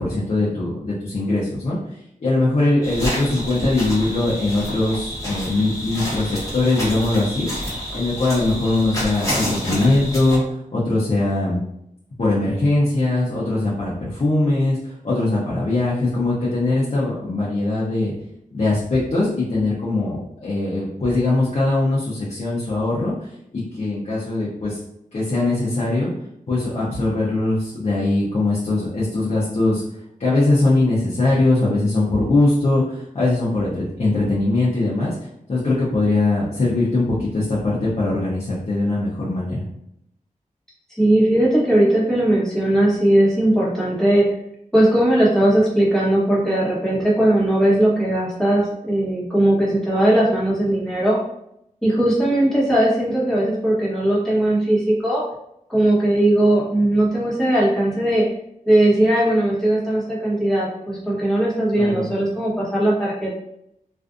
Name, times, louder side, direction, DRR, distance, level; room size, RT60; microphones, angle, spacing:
voice 1, 0.0-1.8 2.2-7.5 7.9-10.4 10.7-11.6 12.2-18.1 18.5-23.3 23.5-24.8 25.1-26.1 26.5-29.8 30.2-35.1 35.5-39.6 61.8-62.1, left 2 dB, 50° left, -8 dB, 0.7 m, -21 dB
sound 1, 2.8-10.4, equal, 25° left, 1.1 m, -28 dB
voice 2, 41.0-44.2 44.7-51.2 51.8-55.2 55.7-58.2 58.7-63.4, right 1 dB, 5° left, -8 dB, 1.1 m, -18 dB
2.5 x 2.3 x 2.4 m, 0.77 s
wide cardioid pair, 85°, 14 cm